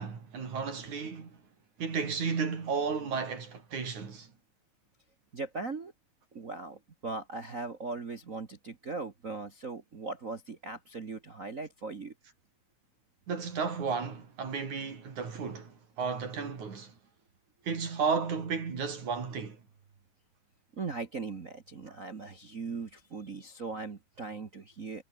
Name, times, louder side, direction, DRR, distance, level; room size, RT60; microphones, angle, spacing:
voice 1, 0.0-1.4 1.8-4.3 13.3-16.9 17.7-19.6, right 5 dB, 65° right, 5.4 m, -33 dB
voice 2, 5.3-5.9 6.3-12.1 20.7-25.0, right 3 dB, 45° right, 1.1 m, -39 dB
omnidirectional pair, 3.6 m